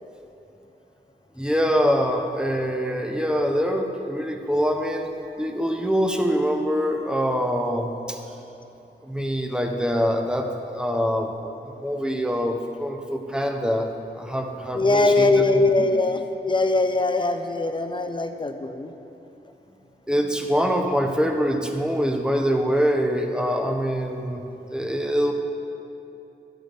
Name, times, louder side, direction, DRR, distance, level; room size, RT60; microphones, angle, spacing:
voice 1, 1.4-5.1 5.4-8.2 9.0-11.3 11.6-15.5 15.8-15.9 20.1-24.4 24.7-25.3, equal, 5° right, 3 dB, 0.9 m, -24 dB
voice 2, 14.7-18.9, left 2 dB, 25° left, 7 dB, 0.7 m, -21 dB
12.0 x 11.5 x 3.5 m, 2.9 s
wide cardioid pair, 90°, 18 cm